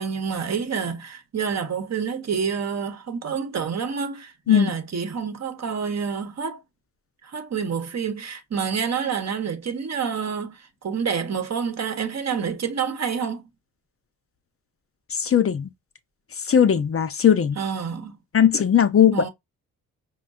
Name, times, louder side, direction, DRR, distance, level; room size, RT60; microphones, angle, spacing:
voice 1, 0.0-6.6 7.2-13.4 17.6-18.2 19.1-19.3, right 6 dB, 45° right, 1.0 m, -28 dB
voice 2, 15.1-15.7 16.4-17.6 18.3-19.3, left 8 dB, 40° left, 0.7 m, -18 dB
5.2 x 2.2 x 2.4 m
hypercardioid pair, 45°, 37 cm